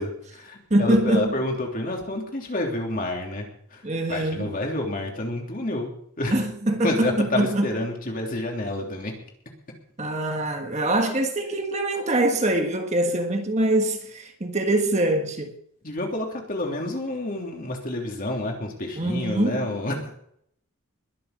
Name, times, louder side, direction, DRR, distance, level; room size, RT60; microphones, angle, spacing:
voice 1, 0.0-5.9 6.2-6.4 6.8-9.1 15.8-20.1, left 1 dB, 40° left, 3.2 m, -29 dB
voice 2, 0.7-1.3 3.8-4.5 6.3-7.7 10.0-15.5 19.0-19.7, right 1 dB, 30° right, 1.5 m, -23 dB
21.5 x 7.1 x 6.6 m
head